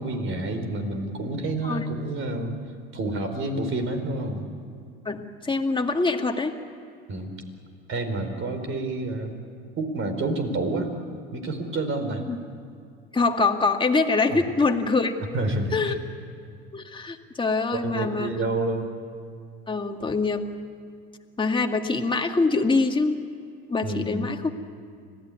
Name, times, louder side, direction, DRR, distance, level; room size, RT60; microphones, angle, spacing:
voice 1, 0.0-2.6 2.9-4.4 7.1-7.3 7.9-9.3 9.8-10.9 11.3-12.2 14.3-14.4 15.3-15.9 17.7-18.9 23.8-24.3, right 2 dB, 45° right, 6 dB, 4.5 m, -28 dB
voice 2, 5.1-6.5 12.3-12.4 13.1-15.1 15.7-16.0 16.7-18.3 19.7-20.4 21.4-23.2 23.7-24.5, left 3 dB, 15° left, 4 dB, 2.1 m, -24 dB
25.5 x 17.0 x 9.7 m, 2.3 s
supercardioid pair, 85°, 30 cm